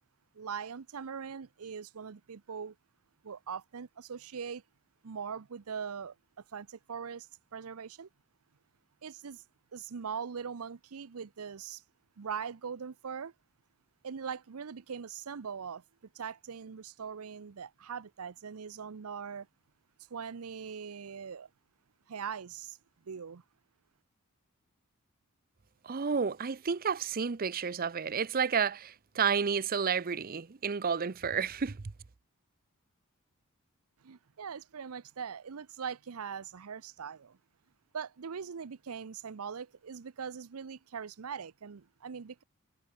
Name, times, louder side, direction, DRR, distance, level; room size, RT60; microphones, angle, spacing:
voice 1, 0.3-2.7 3.2-4.6 5.0-6.2 6.5-8.1 9.0-9.4 9.7-11.8 12.2-13.3 14.0-15.8 16.1-19.5 20.1-21.5 22.1-22.8 23.1-23.4 34.0-37.4 37.9-42.4, right 6 dB, 80° right, 0.6 m, -41 dB
voice 2, 25.8-31.8, right 6 dB, 40° right, 0.6 m, -31 dB
head